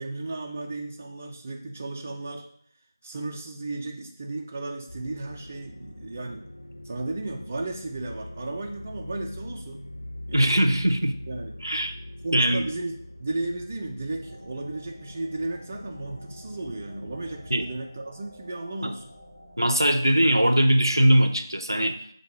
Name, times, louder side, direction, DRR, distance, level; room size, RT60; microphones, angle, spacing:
voice 1, 0.0-2.5 3.0-6.5 6.8-9.9 10.3-10.6 11.3-11.5 12.2-19.1, right 2 dB, 25° right, 1 dB, 0.3 m, -34 dB
sound 1, 4.9-17.8, left 1 dB, 90° left, 0.5 m, -43 dB
voice 2, 10.3-11.1 11.6-11.9 12.3-12.7 17.5-17.7 19.6-22.0, right 1 dB, 90° right, 8 dB, 0.5 m, -21 dB
sound 2, 14.2-20.1, equal, 10° left, 0.8 m, -50 dB
4.5 x 2.3 x 4.2 m, 0.68 s
figure-of-eight pair, 165°, 2 cm